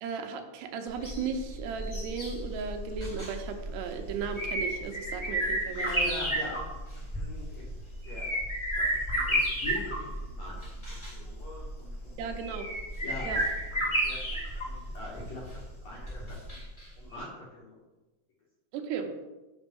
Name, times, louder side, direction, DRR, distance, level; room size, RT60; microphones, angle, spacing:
voice 1, 0.0-5.9 12.2-12.7 13.2-13.4 18.7-19.1, right 6 dB, 85° right, 5 dB, 2.9 m, -35 dB
sound 1, 0.9-16.8 17.1-17.2, right 1 dB, 20° left, 0.6 m, -32 dB
voice 2, 5.7-7.7 8.0-8.3 8.8-12.5 13.0-13.4 13.8-16.6 17.0-17.8, left 1 dB, 60° left, -5 dB, 1.9 m, -43 dB
6.4 x 6.0 x 5.3 m, 1.1 s
omnidirectional pair, 4.7 m